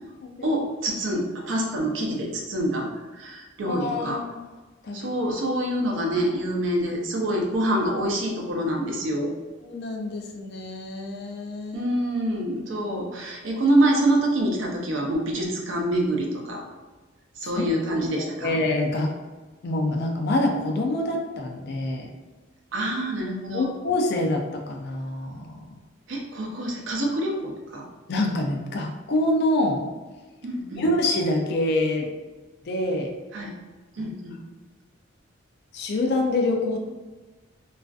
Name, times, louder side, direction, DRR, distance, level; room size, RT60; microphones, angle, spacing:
voice 1, 0.4-2.9 3.1-4.2 4.9-9.3 11.7-16.6 17.4-18.6 22.7-23.7 26.1-27.8 30.4-30.8 33.3-33.5 33.9-34.4, right 1 dB, 70° right, 0 dB, 0.5 m, -26 dB
voice 2, 3.6-4.3 4.8-5.1 9.6-11.9 17.4-19.1 19.6-22.1 23.5-25.6 28.1-29.8 30.8-32.1 32.6-33.1 34.0-34.1 35.7-36.8, left 1 dB, 55° left, 2 dB, 0.4 m, -26 dB
2.4 x 2.4 x 2.3 m, 1.3 s
head